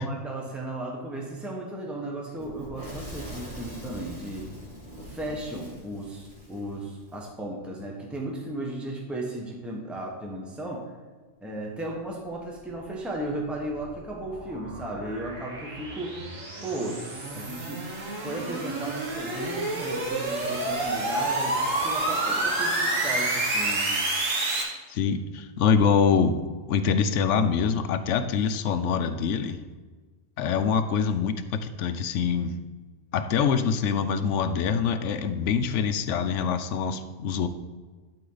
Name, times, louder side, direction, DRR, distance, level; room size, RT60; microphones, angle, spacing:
voice 1, 0.0-4.5 5.1-10.9 11.4-16.2 16.6-17.0 17.3-17.8 18.2-24.0, right 1 dB, ahead, -1 dB, 1.1 m, -35 dB
Fire / Explosion, 2.4-7.2, equal, 25° right, 2.5 m, -42 dB
sound 1, 13.6-24.6, right 2 dB, 85° right, 1.9 m, -29 dB
voice 2, 24.9-26.4 26.7-29.6 30.4-32.5 33.1-37.5, left 6 dB, 75° left, 10 dB, 0.9 m, -25 dB
11.5 x 4.5 x 3.9 m, 1.4 s
omnidirectional pair, 1.3 m